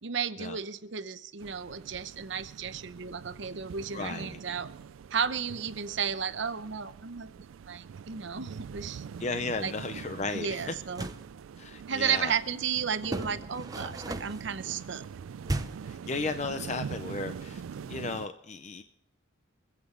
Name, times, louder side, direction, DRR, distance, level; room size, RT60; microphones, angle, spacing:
voice 1, 0.0-4.7 5.1-7.3 7.7-9.0 9.6-9.7 10.3-11.1 11.9-15.0, right 7 dB, 60° right, 11 dB, 0.8 m, -33 dB
sound 1, 1.4-18.3, right 6 dB, 85° right, 0.4 m, -44 dB
voice 2, 3.9-4.4 9.2-10.7 11.6-12.3 15.8-17.6 17.9-18.8, left 3 dB, 35° left, 9 dB, 0.5 m, -35 dB
sound 2, 10.8-11.3 13.0-14.5 15.4-15.9, right 1 dB, 20° right, 0.6 m, -35 dB
24.5 x 8.2 x 3.8 m, 0.84 s
head